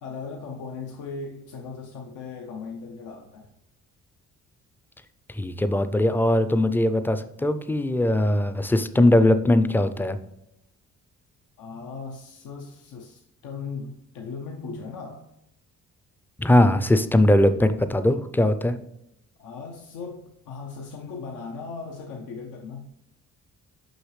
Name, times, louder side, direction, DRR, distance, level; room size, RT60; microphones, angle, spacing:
voice 1, 0.0-3.5 11.6-15.2 19.4-22.9, left 4 dB, 85° left, 1 dB, 0.8 m, -38 dB
voice 2, 5.3-10.2 16.4-18.8, left 1 dB, 5° left, 11 dB, 0.4 m, -20 dB
6.4 x 5.6 x 3.2 m, 0.82 s
cardioid pair, 90°, 30 cm